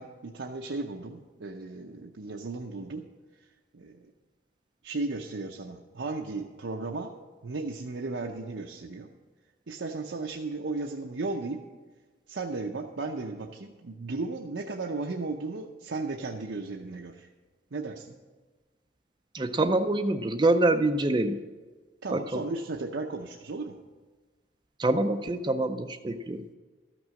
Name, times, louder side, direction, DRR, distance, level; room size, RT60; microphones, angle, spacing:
voice 1, 0.0-3.0 3.7-4.1 4.8-7.1 7.4-9.1 9.7-11.6 12.3-17.3 17.7-18.1 22.0-23.8, right 3 dB, 80° right, 1 dB, 0.7 m, -35 dB
voice 2, 19.3-21.4 22.1-22.4 24.8-26.4, right 2 dB, 25° right, 8 dB, 0.4 m, -25 dB
13.5 x 6.1 x 7.5 m, 1.3 s
head